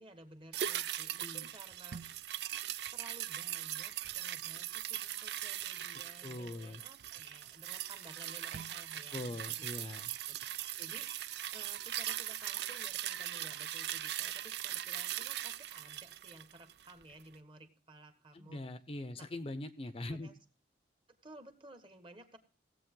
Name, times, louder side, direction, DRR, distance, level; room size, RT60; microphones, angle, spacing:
voice 1, 0.0-2.0 2.9-10.4 10.8-18.7 19.1-19.3 20.1-20.4 21.1-22.4, right 1 dB, 30° right, 8 dB, 1.4 m, -55 dB
sound 1, 0.5-17.0 17.3-17.4, right 12 dB, 60° right, 0.4 m, -40 dB
voice 2, 1.2-1.5 6.2-6.8 9.1-10.1 18.3-20.3, left 1 dB, 30° left, 12 dB, 0.6 m, -42 dB
16.5 x 8.1 x 3.7 m, 0.37 s
head